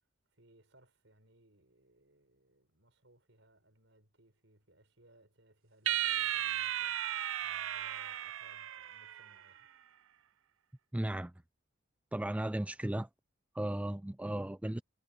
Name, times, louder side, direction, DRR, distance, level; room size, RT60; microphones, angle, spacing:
voice 1, 0.3-9.7, right 1 dB, 70° right, 6.7 m, -65 dB
sound 1, 5.9-9.4, right 12 dB, 90° right, 0.5 m, -35 dB
voice 2, 10.9-11.3 12.1-13.1 13.5-14.8, right 1 dB, 5° right, 0.3 m, -35 dB
head